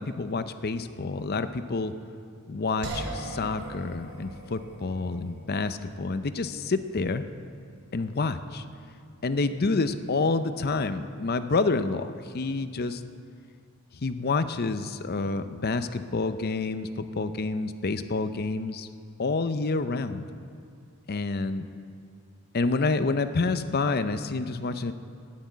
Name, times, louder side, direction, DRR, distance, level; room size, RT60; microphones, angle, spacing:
voice 1, 0.0-1.9 2.5-7.2 7.9-8.6 9.2-13.0 14.0-18.9 19.2-20.3 21.1-21.7 22.5-24.9, left 3 dB, 45° left, 11 dB, 0.6 m, -28 dB
sound 1, 2.8-15.9, right 2 dB, 80° right, 2.4 m, -45 dB
11.5 x 9.5 x 9.1 m, 2.3 s
head